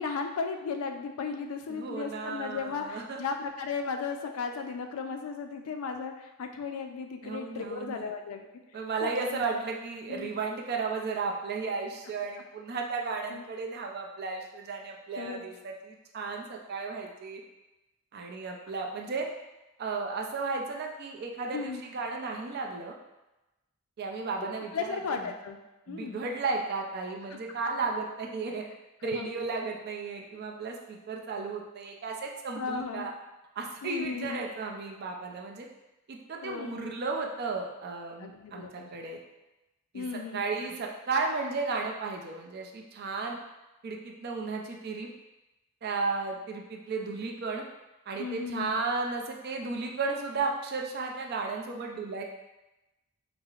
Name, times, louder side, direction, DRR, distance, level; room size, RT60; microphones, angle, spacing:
voice 1, 0.0-8.5 9.0-9.4 10.1-10.3 13.3-13.4 15.2-15.4 21.5-21.8 24.7-25.6 25.9-26.2 27.3-27.4 29.0-29.3 32.6-33.1 33.8-34.5 36.4-36.9 38.2-38.9 39.9-40.4 48.2-48.7, left 5 dB, 75° left, 5 dB, 0.4 m, -35 dB
voice 2, 1.7-3.2 7.2-8.1 8.7-17.4 18.1-19.3 19.8-23.0 24.0-25.3 25.9-28.6 29.0-33.1 33.6-35.7 36.1-39.2 39.9-40.1 40.3-43.4 43.8-45.1 45.8-47.6 48.1-52.2, right 4 dB, 45° right, 1 dB, 0.4 m, -34 dB
4.6 x 2.0 x 2.3 m, 1.0 s
head